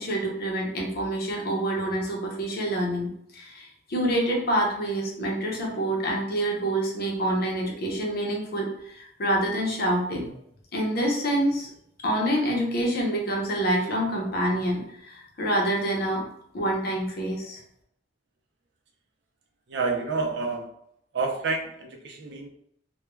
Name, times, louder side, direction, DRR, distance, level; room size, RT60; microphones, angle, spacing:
voice 1, 0.0-3.1 3.3-10.3 10.7-11.7 12.0-16.2 16.5-17.6, right 1 dB, 55° left, -1 dB, 0.7 m, -27 dB
voice 2, 19.7-20.7 21.1-22.5, right 3 dB, 65° right, 2 dB, 0.5 m, -29 dB
2.2 x 2.2 x 3.0 m, 0.71 s
head